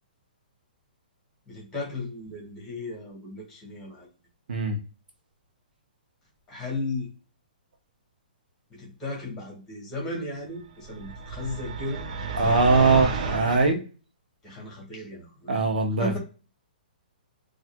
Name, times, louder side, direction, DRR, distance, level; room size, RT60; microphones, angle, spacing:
voice 1, 1.5-4.1 6.5-7.1 8.7-13.0 14.4-15.7 16.0-16.2, left 2 dB, 10° left, -2 dB, 1.4 m, -36 dB
sound 1, 10.8-13.7, right 3 dB, 45° right, 0.5 m, -31 dB
voice 2, 12.4-13.8 15.5-16.2, right 4 dB, 70° right, 4 dB, 0.8 m, -21 dB
4.3 x 2.4 x 2.2 m, 0.36 s
hypercardioid pair, 165°, 5 cm